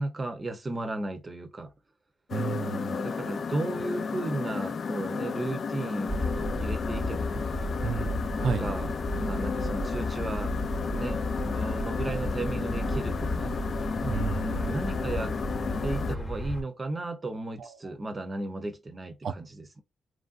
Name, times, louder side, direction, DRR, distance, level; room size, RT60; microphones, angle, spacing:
voice 1, 0.0-1.7 2.7-7.4 8.4-8.9 9.2-10.5 10.9-11.2 11.4-13.5 14.4-15.3 15.8-19.8, right 2 dB, 30° right, 0.7 m, -34 dB
sound 1, 2.3-16.2, left 5 dB, 55° left, 0.3 m, -33 dB
voice 2, 2.3-2.9 7.8-8.7 14.0-14.7 17.6-17.7 19.2-19.3, right 6 dB, 70° right, 0.4 m, -32 dB
sound 2, 6.1-16.6, left 1 dB, 15° left, 1.0 m, -33 dB
3.2 x 2.5 x 2.4 m
cardioid pair, 85°, 0 cm